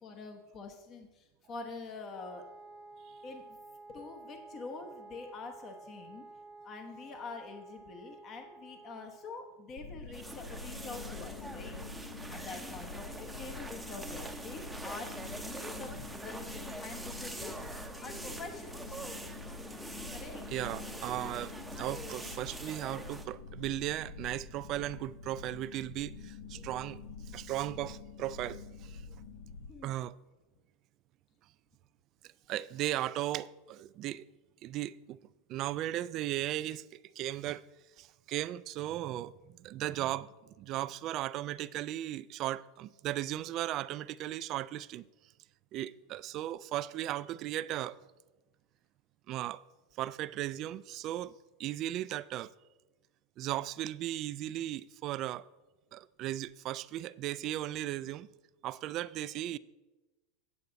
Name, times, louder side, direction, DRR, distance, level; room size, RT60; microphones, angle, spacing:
voice 1, 0.0-2.5 3.2-3.6 3.9-6.3 6.6-11.8 12.3-19.2 20.1-20.5 21.9-22.0 26.5-26.6 29.7-30.0, left 3 dB, 35° left, 1.0 m, -46 dB
Wind instrument woodwind instrument, 2.1-9.5, right 3 dB, 50° left, 3.0 m, -52 dB
sound 1, 9.8-29.7, left 4 dB, 70° left, 1.5 m, -46 dB
sound 2, 10.1-23.2, right 2 dB, 5° right, 0.7 m, -44 dB
voice 2, 20.5-27.0 27.3-29.0 29.8-30.1 32.5-34.2 34.6-35.2 35.5-36.8 37.2-37.6 38.0-39.3 39.6-40.3 40.6-45.0 45.7-48.0 49.3-49.6 50.0-52.5 53.4-55.4 55.9-58.3 58.6-59.6, right 14 dB, 45° right, 0.3 m, -36 dB
8.5 x 8.3 x 3.9 m
supercardioid pair, 120°, 0 cm